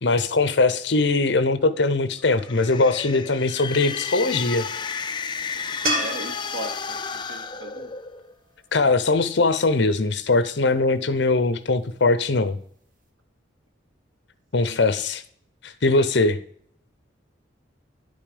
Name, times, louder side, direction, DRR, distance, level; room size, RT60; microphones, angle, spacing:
voice 1, 0.0-4.7 8.7-12.6 14.5-15.2 15.6-16.4, left 3 dB, 60° left, 13 dB, 0.7 m, -21 dB
sound 1, 2.3-8.3, left 6 dB, 25° left, 0.3 m, -32 dB
sound 2, 5.8-9.1 12.3-12.4, right 1 dB, 40° right, 1.5 m, -32 dB
voice 2, 5.9-7.0 7.3-7.9 14.5-14.8, right 1 dB, 75° right, 6 dB, 1.1 m, -37 dB
10.5 x 5.3 x 5.3 m, 0.62 s
head